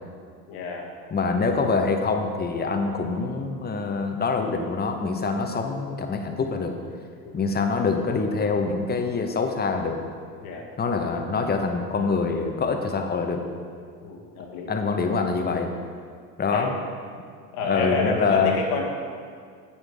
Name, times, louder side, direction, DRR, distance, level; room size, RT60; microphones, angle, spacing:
voice 1, 0.5-0.9 7.2-7.4 10.4-10.6 14.0-14.7 16.5-16.7 17.5-18.8, left 4 dB, 65° left, 0 dB, 1.7 m, -29 dB
voice 2, 1.1-6.8 7.3-10.0 10.8-13.4 14.7-15.7 16.4-16.7 17.6-18.6, left 4 dB, 20° left, 5 dB, 1.0 m, -25 dB
9.6 x 8.8 x 3.5 m, 2.1 s
hypercardioid pair, 75°, 48 cm